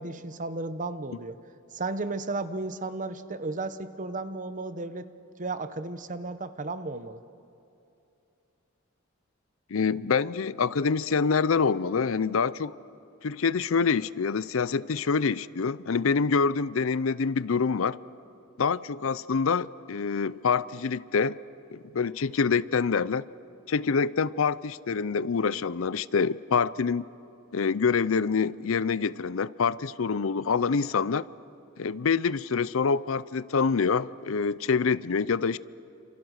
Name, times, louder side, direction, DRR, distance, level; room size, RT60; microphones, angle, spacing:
voice 1, 0.0-1.4 1.7-5.1 5.4-7.2, right 3 dB, 40° right, 12 dB, 1.0 m, -34 dB
voice 2, 9.7-12.7 13.2-18.0 18.6-21.4 21.7-23.3 23.7-27.0 27.5-31.3 31.8-35.6, left 5 dB, 75° left, 19 dB, 0.5 m, -26 dB
29.0 x 27.0 x 6.5 m, 2.7 s
head